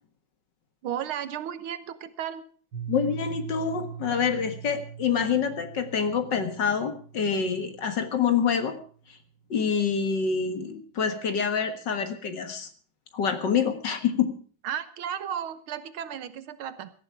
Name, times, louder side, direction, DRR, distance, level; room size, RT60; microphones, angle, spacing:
voice 1, 0.8-2.4 14.6-16.9, right 9 dB, 90° right, 12 dB, 2.0 m, -34 dB
Piano, 2.7-8.3, right 8 dB, 60° right, 2.0 m, -41 dB
voice 2, 2.9-8.8 9.5-12.7 13.1-14.3, left 6 dB, 60° left, 8 dB, 2.2 m, -26 dB
17.5 x 13.0 x 4.7 m, 0.43 s
omnidirectional pair, 2.3 m